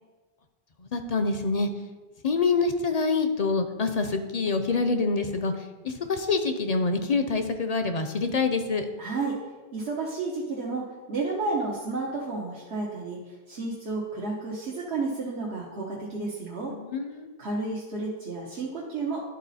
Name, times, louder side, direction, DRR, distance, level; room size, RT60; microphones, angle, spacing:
voice 1, 0.9-1.7 2.2-5.5 5.8-8.9 16.7-17.3, left 4 dB, 45° left, 7 dB, 0.5 m, -26 dB
voice 2, 9.0-9.4 9.7-13.2 13.5-16.7 17.4-19.2, right 3 dB, 80° right, -4 dB, 1.4 m, -31 dB
11.5 x 4.1 x 4.1 m, 1.3 s
omnidirectional pair, 1.1 m